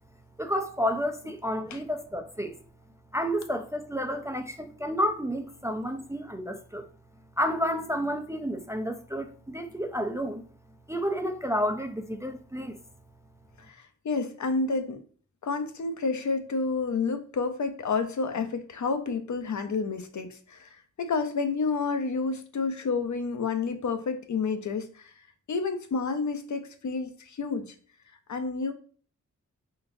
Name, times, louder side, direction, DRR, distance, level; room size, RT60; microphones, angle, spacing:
voice 1, 0.4-2.6 3.1-6.9 7.4-10.4 10.9-12.8, equal, 10° right, 0.3 m, -30 dB
voice 2, 13.6-15.0 15.4-20.7 21.0-25.1 25.5-27.7 28.3-28.7, left 4 dB, 65° left, 0.6 m, -30 dB
3.9 x 3.2 x 2.6 m
wide cardioid pair, 105°, 32 cm